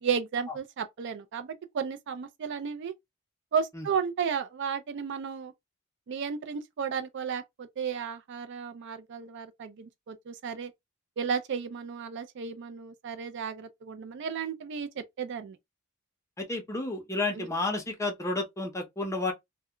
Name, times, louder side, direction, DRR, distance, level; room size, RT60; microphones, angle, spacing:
voice 1, 0.0-2.9 3.5-5.5 6.1-10.7 11.2-15.6 17.3-17.5, right 6 dB, 55° right, 0.4 m, -33 dB
voice 2, 16.4-19.3, left 2 dB, 15° left, 0.7 m, -31 dB
2.2 x 2.1 x 3.6 m
head